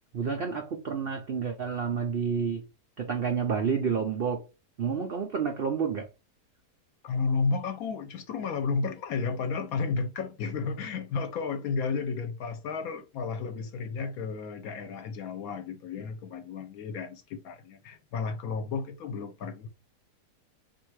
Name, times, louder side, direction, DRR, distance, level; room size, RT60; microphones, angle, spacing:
voice 1, 0.1-2.6 3.0-4.5 4.8-6.1, right 6 dB, 90° right, 0.5 m, -29 dB
voice 2, 7.0-19.7, left 4 dB, 70° left, 1.0 m, -32 dB
3.8 x 2.6 x 4.6 m
omnidirectional pair, 1.8 m